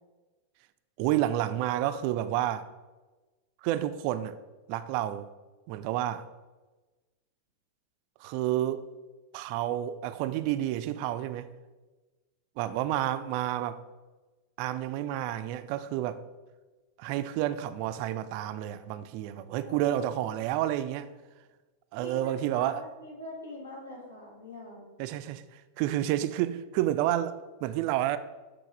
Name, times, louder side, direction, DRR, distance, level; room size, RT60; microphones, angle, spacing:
voice 1, 1.0-2.7 3.6-4.3 4.7-5.3 5.7-6.2 8.2-8.9 9.3-11.5 12.6-13.8 14.6-16.2 17.0-21.1 21.9-22.8 25.0-28.2, right 13 dB, 45° right, 0.3 m, -30 dB
voice 2, 19.6-20.0 20.5-20.6 22.0-22.2 22.5-24.9, left 1 dB, 80° left, 1.8 m, -44 dB
6.9 x 3.8 x 4.5 m
figure-of-eight pair, 90°, 0 cm